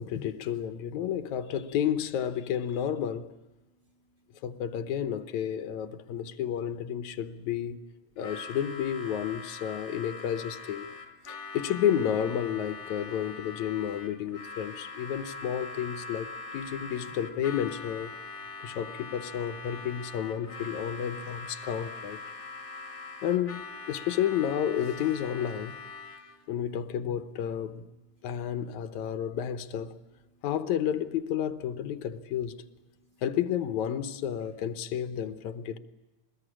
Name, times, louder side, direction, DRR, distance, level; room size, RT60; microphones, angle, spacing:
voice 1, 0.0-3.3 4.4-7.8 8.2-10.9 11.3-18.1 18.6-22.2 23.2-25.8 26.5-27.9 28.2-30.0 30.4-32.6 33.2-35.8, left 9 dB, 80° left, 2.3 m, -31 dB
voice 2, 3.6-4.4 6.0-6.2 11.2-11.6 18.2-18.8 22.3-23.2 26.0-26.5 28.0-28.5 30.3-30.4 32.9-33.2, right 1 dB, 25° right, 3.1 m, -68 dB
Harmonica, 8.2-26.4, left 4 dB, 30° left, 2.1 m, -42 dB
23.5 x 20.0 x 9.9 m
omnidirectional pair, 3.3 m